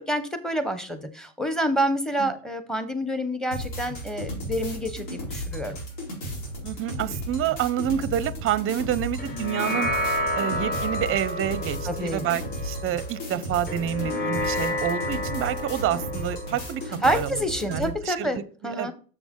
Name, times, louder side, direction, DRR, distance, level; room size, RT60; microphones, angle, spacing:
voice 1, 0.0-5.8 11.9-12.2 17.0-18.9, equal, ahead, 10 dB, 1.1 m, -28 dB
sound 1, 3.5-18.0, equal, 65° left, 4.2 m, -34 dB
voice 2, 6.6-9.9 10.4-17.4 17.7-18.9, right 11 dB, 30° right, 18 dB, 0.6 m, -28 dB
sound 2, 9.2-17.9, left 1 dB, 20° left, 1.4 m, -31 dB
7.1 x 6.0 x 3.7 m, 0.41 s
hypercardioid pair, 85°, 43 cm